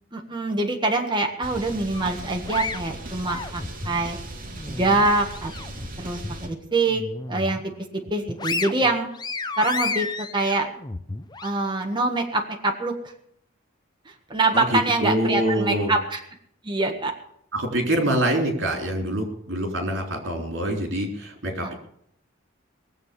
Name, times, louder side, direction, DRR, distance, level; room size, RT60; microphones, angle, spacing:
voice 1, 0.1-4.2 4.7-5.5 6.0-7.0 7.3-7.6 7.9-9.1 9.6-10.7 11.4-12.9 14.3-16.2 16.6-17.1 21.6-21.7, right 2 dB, 25° right, 2 dB, 1.6 m, -24 dB
sound 1, 1.4-6.5, right 1 dB, 45° right, 2.1 m, -38 dB
sound 2, 1.9-4.0 4.4-5.9 6.2-6.4 6.9-7.6 8.0-11.5, left 3 dB, 20° left, 0.6 m, -32 dB
voice 2, 14.5-15.9 17.5-21.7, right 1 dB, 65° right, 3 dB, 3.7 m, -25 dB
20.5 x 7.8 x 6.7 m, 0.69 s
head